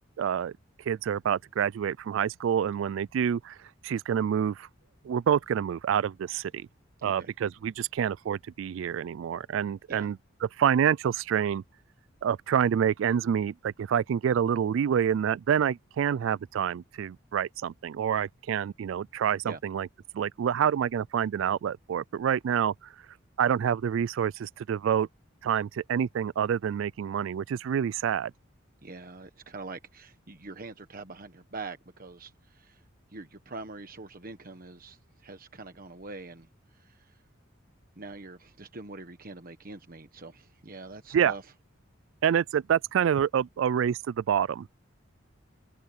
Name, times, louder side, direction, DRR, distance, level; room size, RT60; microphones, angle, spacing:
voice 1, 0.2-0.5 0.9-3.6 3.8-4.7 5.0-6.7 7.0-10.2 10.6-11.6 12.2-19.9 20.1-22.9 23.4-25.1 25.4-28.3 41.1-41.3 42.2-44.7, right 8 dB, 70° right, 0.3 m, -27 dB
voice 2, 28.8-32.8 33.1-37.2 38.0-41.4, right 3 dB, 45° right, 1.2 m, -44 dB
head